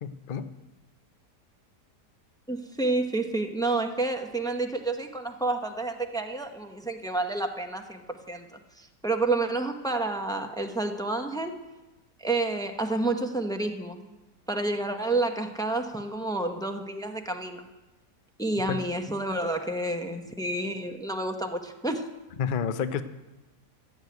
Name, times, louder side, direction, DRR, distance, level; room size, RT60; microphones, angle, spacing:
voice 1, 0.0-0.5 18.7-18.8 22.4-23.0, left 7 dB, 55° left, 10 dB, 0.5 m, -29 dB
voice 2, 2.5-11.5 12.2-14.0 14.5-17.7 18.4-22.1, right 2 dB, 5° left, 5 dB, 0.5 m, -29 dB
13.0 x 7.2 x 9.3 m, 1.1 s
omnidirectional pair, 1.8 m